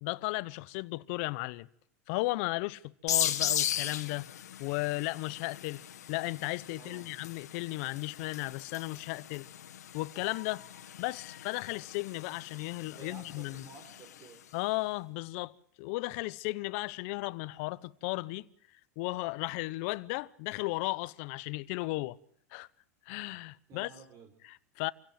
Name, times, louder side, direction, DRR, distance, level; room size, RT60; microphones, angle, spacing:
voice 1, 0.0-1.7 2.1-4.3 4.6-5.8 6.1-9.5 9.9-10.6 11.0-13.6 14.5-18.5 19.0-22.2 22.5-22.7 23.1-23.9 24.4-24.9, left 22 dB, 55° left, 0.9 m, -35 dB
sound 1, 3.1-14.4, left 11 dB, 85° left, 1.9 m, -38 dB
voice 2, 6.8-7.1 12.8-14.4 23.7-24.3, right 5 dB, 40° right, 4.2 m, -52 dB
26.5 x 17.0 x 7.5 m
hypercardioid pair, 115°, 9 cm